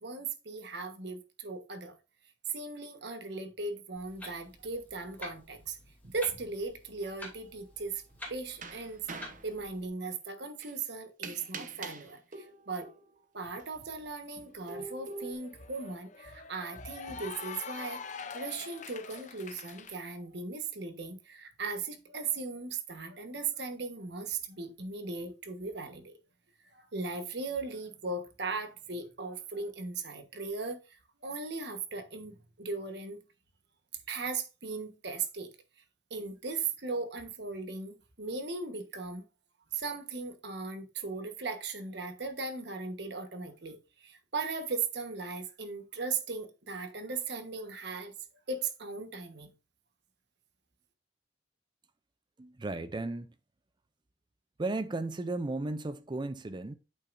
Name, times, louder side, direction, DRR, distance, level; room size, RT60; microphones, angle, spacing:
voice 1, 0.0-2.0 2.5-5.8 6.0-8.0 8.3-9.1 9.4-12.9 13.3-18.0 18.3-26.2 26.7-33.2 34.1-35.5 36.1-39.2 39.7-48.1 48.5-49.5, right 4 dB, 65° right, 1.3 m, -38 dB
Clock, 3.9-9.9, left 1 dB, 10° left, 2.7 m, -49 dB
sound 1, 7.0-7.3 8.3-9.5 10.6-10.7 11.2-13.1 13.6-13.7 14.7-15.3, right 4 dB, 45° right, 1.0 m, -43 dB
Cheering / Applause, 14.1-14.2 14.5-19.9, left 6 dB, 40° left, 0.6 m, -45 dB
voice 2, 52.4-53.3 54.6-56.7, right 2 dB, 25° right, 0.5 m, -35 dB
8.5 x 6.5 x 2.6 m
head